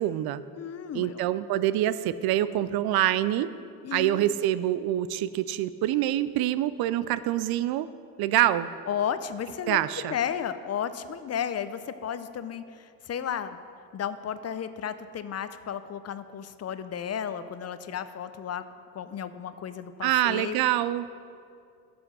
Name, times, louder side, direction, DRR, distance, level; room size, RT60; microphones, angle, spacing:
voice 1, 0.0-0.4 0.9-3.5 3.9-7.9 8.2-8.7 9.7-10.2 20.0-21.2, right 13 dB, 65° right, 15 dB, 0.5 m, -26 dB
voice 2, 0.5-1.2 3.8-4.3 8.9-13.6 13.9-18.6 18.9-20.6, left 8 dB, 40° left, 12 dB, 0.6 m, -33 dB
10.0 x 6.1 x 6.8 m, 2.4 s
supercardioid pair, 70°, 40 cm